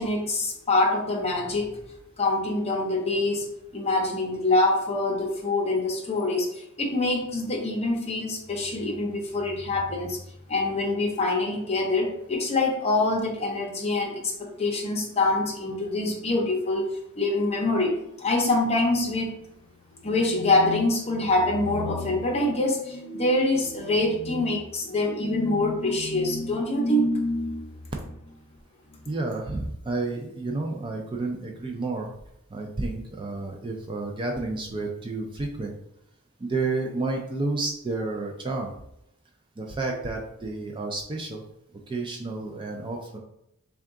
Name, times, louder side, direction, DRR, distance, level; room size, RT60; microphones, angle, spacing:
voice 1, 0.0-1.8 2.2-3.5 3.7-10.2 10.5-16.9 17.2-17.9 18.2-19.3 20.0-27.7 28.0-28.3 28.9-29.0, left 2 dB, 30° left, 0 dB, 0.7 m, -25 dB
voice 2, 29.1-32.1 32.5-35.7 36.4-38.7 39.6-41.4 41.9-43.2, right 3 dB, 20° right, 1 dB, 0.4 m, -30 dB
3.6 x 2.3 x 3.6 m, 0.80 s
head